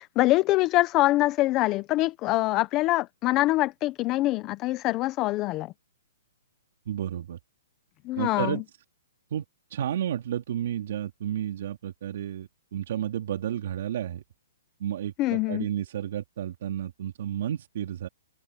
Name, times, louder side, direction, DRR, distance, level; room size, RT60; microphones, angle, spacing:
voice 1, 0.0-5.7 8.1-8.5 15.2-15.7, left 18 dB, 25° left, 0.8 m, -24 dB
voice 2, 6.9-7.4 8.2-8.6 9.3-9.4 9.7-14.2 14.8-18.1, right 10 dB, 55° right, 2.8 m, -31 dB
hypercardioid pair, 160°, 0 cm